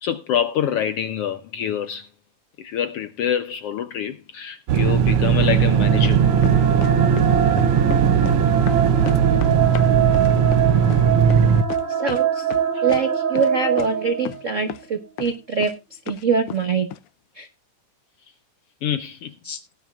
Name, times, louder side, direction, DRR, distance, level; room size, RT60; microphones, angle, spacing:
voice 1, 0.0-2.1 2.6-6.3 12.7-12.9 18.8-19.3, left 9 dB, 75° left, 1.4 m, -26 dB
sound 1, 4.7-11.6, right 8 dB, 80° right, 1.3 m, -18 dB
sound 2, 5.5-14.7, right 7 dB, 40° right, 1.2 m, -24 dB
sound 3, 6.0-7.3 7.6-8.4 8.7-12.2 12.5-13.0 13.4-13.5 13.8-13.9 14.3-14.4 14.7-14.9 15.2-15.7 16.1-16.6 16.9-17.0, left 11 dB, 90° left, 1.2 m, -33 dB
voice 2, 12.0-12.4 12.8-15.7 16.0-16.9 17.4-17.5 19.4-19.6, right 5 dB, 65° right, 0.7 m, -24 dB
18.0 x 9.9 x 2.4 m
omnidirectional pair, 3.5 m